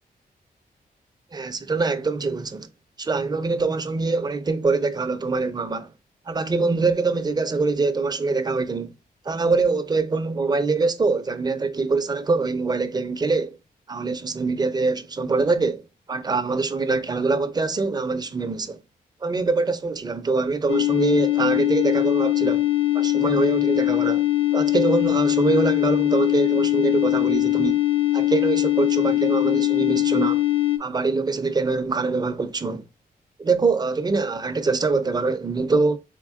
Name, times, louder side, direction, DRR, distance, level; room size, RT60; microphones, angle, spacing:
voice 1, 1.3-2.7 3.0-5.9 6.3-8.9 9.2-13.6 13.9-15.8 16.1-18.8 19.2-22.6 22.9-24.2 24.5-27.8 28.1-30.4 30.8-32.8 33.4-36.0, right 4 dB, 25° right, 0.5 m, -24 dB
sound 1, 20.7-30.8, left 15 dB, 35° left, 0.5 m, -21 dB
3.7 x 3.6 x 2.4 m
wide cardioid pair, 105°, 16 cm